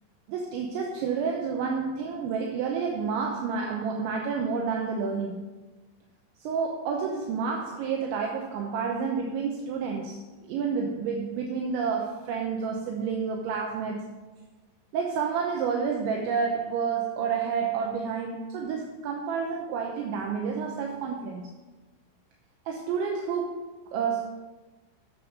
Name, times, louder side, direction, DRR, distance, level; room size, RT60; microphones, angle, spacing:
voice 1, 0.3-5.4 6.4-10.2 10.5-14.2 14.9-21.5 22.7-24.3, right 5 dB, 80° right, 1 dB, 3.0 m, -29 dB
9.4 x 6.8 x 6.1 m, 1.2 s
omnidirectional pair, 5.6 m